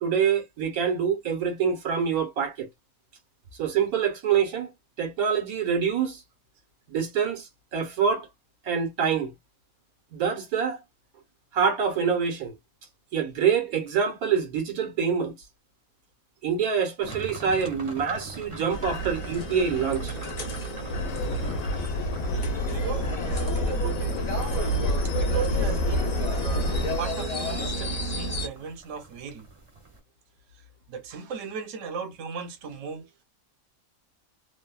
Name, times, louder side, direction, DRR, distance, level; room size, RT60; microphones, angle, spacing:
voice 1, 0.0-2.7 3.6-4.7 5.0-6.2 6.9-8.3 8.6-9.3 10.1-10.8 11.5-12.5 13.1-15.3 16.4-20.1, right 7 dB, 85° right, 1.5 m, -26 dB
sound 1, 17.0-30.0, right 3 dB, 30° right, 0.7 m, -45 dB
sound 2, 18.7-28.5, right 2 dB, 45° left, 0.5 m, -32 dB
Subway metro underground, 20.9-27.0, left 2 dB, 80° left, 1.2 m, -28 dB
voice 2, 22.7-24.1 24.5-24.8 25.0-26.7 27.0-29.5 30.9-33.1, right 6 dB, 65° right, 1.0 m, -37 dB
3.3 x 2.1 x 2.2 m
omnidirectional pair, 1.5 m